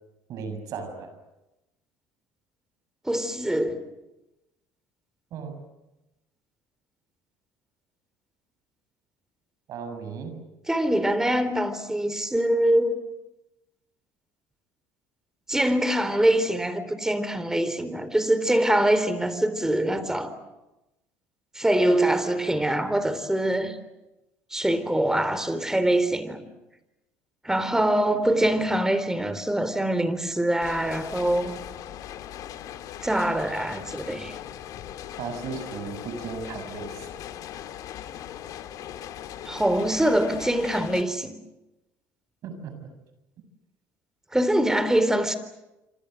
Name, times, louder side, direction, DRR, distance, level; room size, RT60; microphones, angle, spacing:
voice 1, 0.3-1.1 5.3-5.5 9.7-10.4 35.2-37.1 42.4-42.9, right 5 dB, 60° right, 7.2 m, -35 dB
voice 2, 3.1-3.8 10.7-13.0 15.5-20.3 21.6-23.8 24.5-26.5 27.4-31.6 33.0-34.3 39.5-41.4 44.3-45.3, right 1 dB, 10° right, 3.9 m, -24 dB
sound 1, 30.6-41.0, left 11 dB, 65° left, 2.1 m, -39 dB
27.0 x 26.5 x 8.0 m
supercardioid pair, 80°, 7 cm